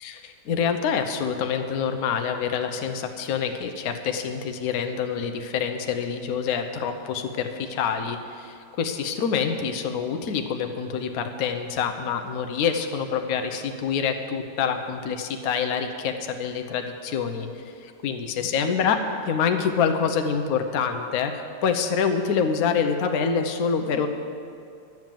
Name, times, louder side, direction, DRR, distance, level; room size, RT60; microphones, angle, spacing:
voice 1, 0.0-19.0 19.3-24.1, left 6 dB, 60° left, 6 dB, 1.2 m, -26 dB
12.0 x 7.6 x 7.5 m, 2.4 s
omnidirectional pair, 2.1 m